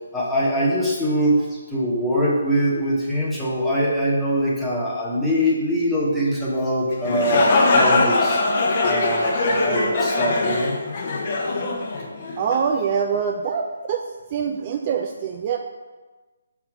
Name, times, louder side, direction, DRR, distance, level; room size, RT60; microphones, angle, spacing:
voice 1, 0.1-8.4 8.8-10.7, equal, ahead, -8 dB, 1.2 m, -23 dB
sound 1, 6.9-12.6, left 2 dB, 40° left, 0.9 m, -21 dB
voice 2, 12.4-14.0 14.3-15.6, right 6 dB, 35° right, 2 dB, 0.4 m, -24 dB
5.8 x 3.5 x 4.7 m, 1.3 s
figure-of-eight pair, 150°, 0 cm